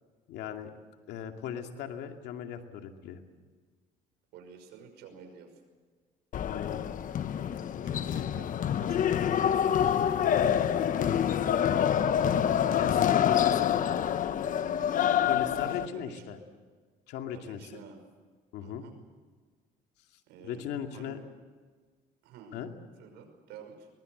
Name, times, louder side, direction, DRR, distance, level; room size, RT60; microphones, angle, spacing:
voice 1, 0.3-0.7 1.1-3.2 6.4-6.8 12.8-12.9 13.2-13.9 15.2-16.4 17.1-17.6 18.5-18.8 20.4-21.2 22.5-22.7, left 9 dB, 85° left, 4 dB, 2.5 m, -38 dB
voice 2, 4.3-5.6 7.8-11.6 12.6-13.5 14.8-15.2 15.7-16.2 17.3-18.0 18.6-18.9 20.3-21.2 22.2-22.6 23.0-23.9, right 5 dB, 90° right, 6 dB, 5.8 m, -50 dB
sound 1, 6.3-15.9, left 9 dB, 50° left, 1.1 m, -26 dB
23.0 x 21.5 x 8.0 m, 1.5 s
cardioid pair, 110°, 17 cm